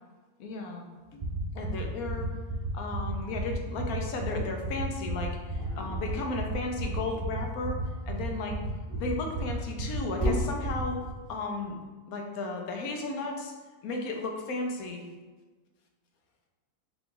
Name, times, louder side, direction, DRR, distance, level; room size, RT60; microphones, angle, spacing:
voice 1, 0.4-0.9 1.1-1.2 1.5-2.3 2.7-7.8 8.1-8.6 9.0-11.0 11.3-11.8 12.1-13.5 13.8-15.0, left 2 dB, 85° left, 2 dB, 1.2 m, -34 dB
sound 1, 1.2-11.1, right 4 dB, 50° right, 0.5 m, -34 dB
Dog, 5.6-7.1 8.7-10.5, equal, 70° right, 2.1 m, -34 dB
5.7 x 2.4 x 3.8 m, 1.3 s
omnidirectional pair, 1.5 m